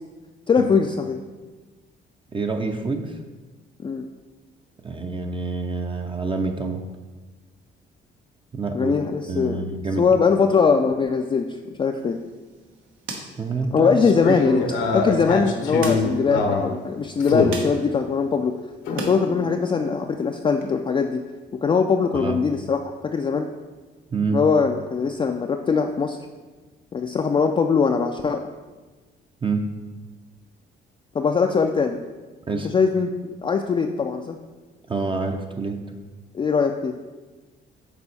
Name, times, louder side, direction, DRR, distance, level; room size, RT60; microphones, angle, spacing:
voice 1, 0.5-1.2 3.8-4.1 8.7-9.7 10.0-12.2 13.7-14.6 14.9-18.6 18.9-21.2 21.6-23.5 24.3-26.2 26.9-28.5 31.1-32.0 32.7-33.1 33.4-34.4 36.3-37.0, left 5 dB, 25° left, 4 dB, 0.3 m, -21 dB
voice 2, 2.3-3.2 4.8-6.8 8.5-8.9 9.3-10.1 13.4-13.9 22.1-22.4 24.1-24.4 29.4-29.7 32.5-32.7 34.9-35.8, right 3 dB, 25° right, 4 dB, 0.5 m, -27 dB
sound 1, 12.0-19.2 19.5-20.7, right 3 dB, 80° right, 1.1 m, -40 dB
sound 2, 14.0-16.7 17.2-17.6 18.8-20.0, left 3 dB, 75° left, 0.9 m, -25 dB
6.9 x 4.2 x 4.2 m, 1.3 s
cardioid pair, 90°, 20 cm